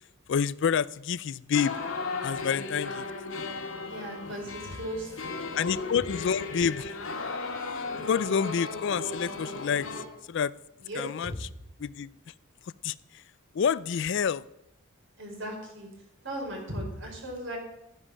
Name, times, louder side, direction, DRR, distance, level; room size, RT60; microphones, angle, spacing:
voice 1, 0.3-1.8 2.2-3.1 5.5-7.0 7.7-7.8 8.1-9.9 10.3-10.5 10.9-11.5 11.8-12.3 12.8-13.2 13.5-14.4, left 7 dB, 60° left, 19 dB, 0.4 m, -28 dB
sound 1, 1.5-10.0, left 3 dB, 90° left, 1.9 m, -36 dB
voice 2, 3.8-5.8 10.9-11.1 15.2-15.9 16.2-17.6, right 1 dB, 65° right, 0 dB, 4.6 m, -37 dB
13.5 x 9.9 x 6.2 m, 0.87 s
head